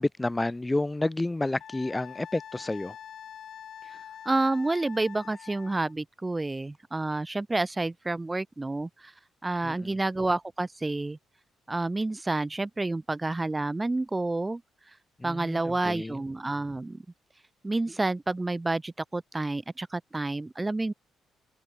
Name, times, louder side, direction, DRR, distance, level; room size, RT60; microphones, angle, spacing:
voice 1, 0.0-3.0 9.6-10.0 15.2-16.2, left 2 dB, 15° left, 0.9 m, -30 dB
Wind instrument woodwind instrument, 1.6-5.9, left 9 dB, 60° left, 0.8 m, -45 dB
voice 2, 4.3-9.1 9.4-11.2 11.7-14.6 15.2-17.0 17.6-20.9, right 2 dB, 15° right, 0.7 m, -29 dB
cardioid pair, 90°, 0 cm